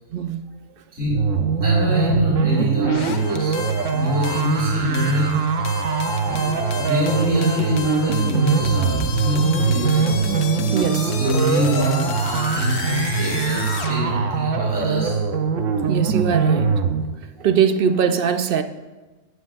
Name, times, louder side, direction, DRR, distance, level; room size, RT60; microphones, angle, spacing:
voice 1, 0.1-0.4 10.7-11.2 15.9-16.7 17.4-18.6, right 7 dB, 60° right, 9 dB, 0.6 m, -21 dB
voice 2, 0.9-1.3 1.6-3.5 3.9-5.5 6.2-6.5 6.8-10.1 11.2-13.6 13.9-15.3, equal, 15° right, -6 dB, 2.6 m, -24 dB
sound 1, 1.0-17.0, right 5 dB, 85° right, 1.1 m, -22 dB
sound 2, 2.8-13.9, left 5 dB, 65° left, 1.0 m, -33 dB
sound 3, 6.2-13.8, left 1 dB, 25° left, 1.7 m, -43 dB
16.0 x 7.9 x 2.5 m, 1.2 s
omnidirectional pair, 1.3 m